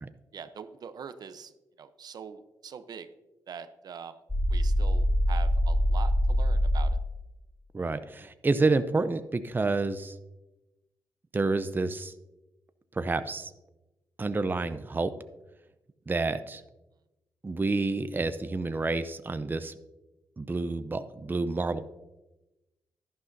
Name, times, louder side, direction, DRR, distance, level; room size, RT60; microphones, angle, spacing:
voice 1, 0.3-1.5 1.8-3.1 3.5-4.2 4.5-6.9, right 6 dB, 65° right, 11 dB, 0.7 m, -43 dB
sound 1, 4.3-6.9, equal, 10° left, 2.0 m, -24 dB
voice 2, 7.7-10.1 11.3-12.1 13.0-13.5 14.2-15.1 16.1-16.6 17.4-19.7 20.4-21.8, right 3 dB, 25° right, 11 dB, 0.6 m, -29 dB
11.5 x 11.0 x 2.7 m, 1.0 s
cardioid pair, 60°, 7 cm